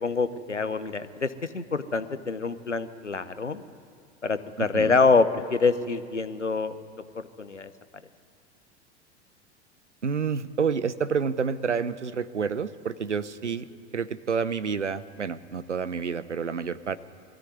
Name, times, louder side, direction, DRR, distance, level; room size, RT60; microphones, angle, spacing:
voice 1, 0.0-3.6 4.2-6.8 7.4-7.7, left 4 dB, 85° left, 12 dB, 1.0 m, -25 dB
voice 2, 4.6-5.0 10.0-13.7 13.9-17.0, right 6 dB, 80° right, 15 dB, 0.8 m, -29 dB
21.0 x 13.5 x 9.4 m, 2.3 s
figure-of-eight pair, 90°, 35 cm